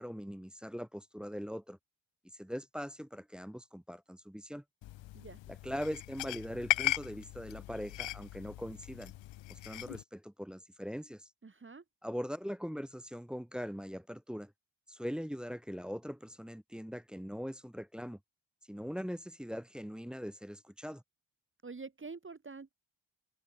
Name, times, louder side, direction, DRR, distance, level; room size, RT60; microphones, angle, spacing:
voice 1, 0.0-1.8 2.4-4.6 5.6-9.1 9.5-11.2 12.0-14.5 14.9-18.2 18.7-21.0, equal, ahead, 0.4 m, -41 dB
sound 1, 4.8-10.0, left 15 dB, 85° left, 0.7 m, -38 dB
voice 2, 11.4-11.8 21.6-22.7, right 4 dB, 25° right, 1.8 m, -46 dB
open air
cardioid pair, 100°, 44 cm